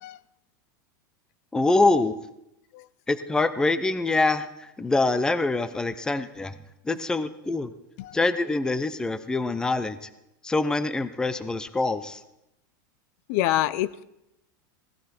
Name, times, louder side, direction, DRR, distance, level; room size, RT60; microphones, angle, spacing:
voice 1, 1.5-2.1 3.1-6.6 6.8-7.7 8.1-10.1 10.4-12.2, left 3 dB, 5° left, 0.6 m, -25 dB
voice 2, 13.3-14.0, left 14 dB, 55° left, 0.5 m, -26 dB
17.0 x 13.0 x 4.4 m
supercardioid pair, 150°, 11 cm